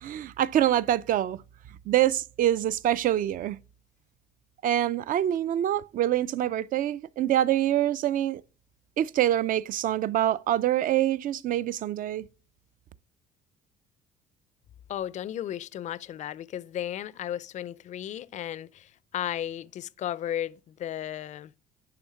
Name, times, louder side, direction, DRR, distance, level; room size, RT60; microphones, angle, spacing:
voice 1, 0.0-1.4 1.9-3.6 4.6-8.4 9.0-12.3, right 12 dB, 55° right, 0.4 m, -25 dB
voice 2, 14.9-21.5, left 11 dB, 45° left, 0.4 m, -34 dB
11.0 x 3.6 x 5.6 m
cardioid pair, 110°, 17 cm